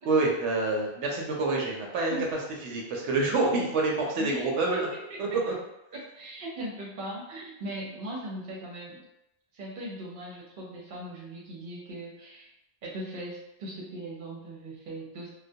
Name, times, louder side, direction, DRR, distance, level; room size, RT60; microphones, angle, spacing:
voice 1, 0.0-2.2 2.6-4.9 5.2-5.5, right 3 dB, 90° right, -1 dB, 0.9 m, -27 dB
voice 2, 4.0-4.8 5.1-5.2 5.9-9.0 9.5-12.5 12.8-15.3, right 1 dB, 55° right, -3 dB, 0.8 m, -39 dB
2.2 x 2.1 x 2.6 m, 0.86 s
omnidirectional pair, 1.1 m